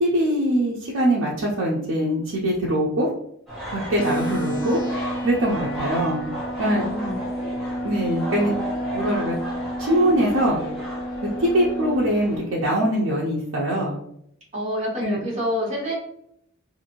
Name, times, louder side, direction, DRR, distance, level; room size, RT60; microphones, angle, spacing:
voice 1, 0.0-3.1 3.7-4.8 5.2-6.2 6.6-6.8 7.8-8.5 8.9-9.4 9.8-10.6 11.4-14.0 15.0-15.2, right 1 dB, 80° right, -4 dB, 0.5 m, -22 dB
sound 1, 3.5-12.4, right 1 dB, ahead, 1.0 m, -34 dB
sound 2, 4.0-12.0, equal, 80° left, 0.8 m, -30 dB
voice 2, 6.6-7.2 14.5-15.9, equal, 35° right, -5 dB, 1.3 m, -27 dB
2.5 x 2.5 x 2.9 m, 0.72 s
head